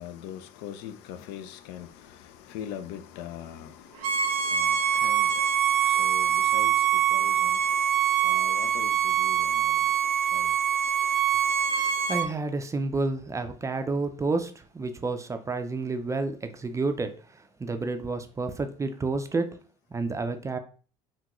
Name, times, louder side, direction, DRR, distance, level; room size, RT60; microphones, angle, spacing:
voice 1, 0.0-5.3 5.9-7.6 8.2-9.8 10.3-10.5, left 10 dB, 65° left, 0.4 m, -42 dB
Bowed string instrument, 4.0-12.3, right 9 dB, 90° right, 0.5 m, -24 dB
voice 2, 12.1-17.1 17.6-19.5 19.9-20.6, right 3 dB, 15° right, 0.4 m, -30 dB
3.6 x 2.2 x 2.9 m
hypercardioid pair, 80°, 18 cm